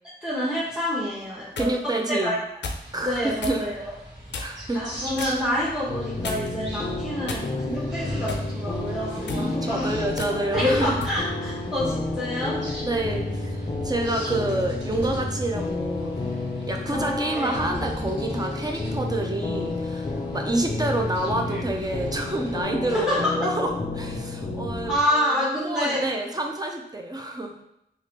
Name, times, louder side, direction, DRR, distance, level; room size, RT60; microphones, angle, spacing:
voice 1, 0.2-1.7 2.1-2.4 3.0-3.9 4.7-9.9 10.5-12.6 17.3-17.6 22.9-23.3 24.8-26.0, left 1 dB, 5° right, -9 dB, 0.9 m, -27 dB
sound 1, 1.2-1.7 2.6-2.9 3.4-3.6 4.3-4.7 5.2-5.4 6.2-6.6 7.3-7.8 8.3-8.5 9.2-9.5 10.2-10.3 11.0-11.2, left 3 dB, 85° left, 0.4 m, -34 dB
voice 2, 1.6-2.4 2.9-3.7 4.4-4.8 9.1-11.0 12.8-16.3 16.7-24.9 25.6-27.6, right 2 dB, 20° right, 2 dB, 0.5 m, -28 dB
sound 2, 2.8-22.6, equal, 90° right, 1.3 m, -41 dB
sound 3, 5.9-25.0, left 2 dB, 35° left, 0.5 m, -31 dB
3.0 x 2.4 x 3.0 m, 0.80 s
cardioid pair, 45°, 18 cm